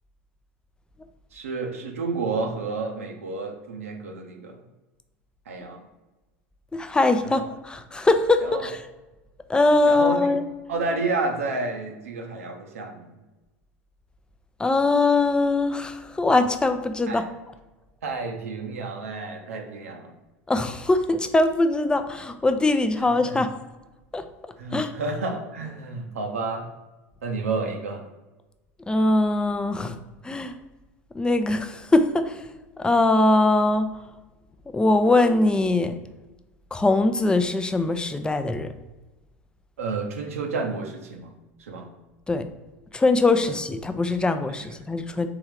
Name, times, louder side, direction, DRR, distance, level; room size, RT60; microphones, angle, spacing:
voice 1, 1.3-4.6 5.5-5.8 7.2-7.5 8.4-8.7 9.8-10.3 10.7-13.1 17.1-17.2 18.0-20.1 23.0-23.4 24.6-26.7 27.2-28.1 39.8-41.3 41.6-41.9 43.4-43.6 44.7-44.8, right 3 dB, 90° right, 3 dB, 0.7 m, -30 dB
voice 2, 6.7-8.8 9.5-10.4 14.6-17.3 20.5-23.5 24.1-24.2 24.7-24.9 28.9-30.0 30.2-30.6 31.1-32.4 32.8-33.9 34.7-36.0 36.7-38.7 42.3-42.5 42.9-45.3, left 2 dB, 10° left, 9 dB, 0.4 m, -22 dB
3.6 x 3.1 x 4.7 m, 1.1 s
hypercardioid pair, 90°, 7 cm